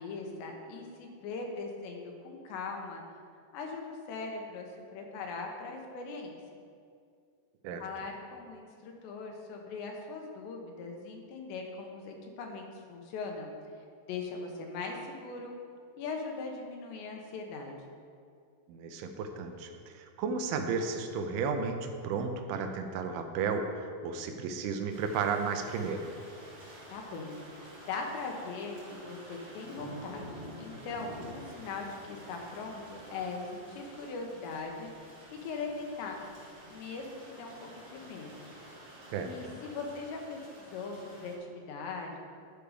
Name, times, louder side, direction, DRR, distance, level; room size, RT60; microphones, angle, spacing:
voice 1, 0.0-3.0 3.5-6.4 7.8-13.5 14.1-15.5 16.0-17.7 26.9-27.4 27.9-30.3 30.6-34.9 35.4-36.2 36.7-38.5 39.2-40.4 40.7-42.2, left 4 dB, 85° left, 2 dB, 3.2 m, -40 dB
voice 2, 18.7-23.7 24.0-26.0 39.1-39.6, right 5 dB, 80° right, 5 dB, 2.4 m, -33 dB
sound 1, 24.9-41.3, right 1 dB, 45° right, 1.1 m, -49 dB
11.0 x 5.1 x 4.9 m, 2.3 s
omnidirectional pair, 4.9 m